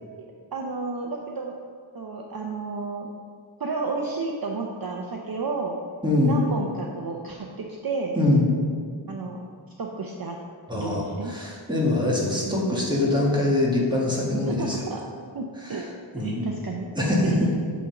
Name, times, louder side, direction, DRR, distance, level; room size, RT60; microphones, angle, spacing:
voice 1, 0.5-1.5 1.9-3.1 3.6-5.8 6.2-8.2 9.1-9.4 9.8-10.4 10.7-11.3 12.4-12.8 14.5-15.0 15.3-15.9 16.2-17.5, right 3 dB, 50° right, 0 dB, 0.7 m, -32 dB
voice 2, 6.0-6.4 8.2-8.5 10.7-14.9 15.6-15.9 16.1-16.5 17.0-17.3, left 2 dB, 10° right, -4 dB, 1.7 m, -23 dB
8.3 x 3.8 x 5.8 m, 2.1 s
wide cardioid pair, 70°, 48 cm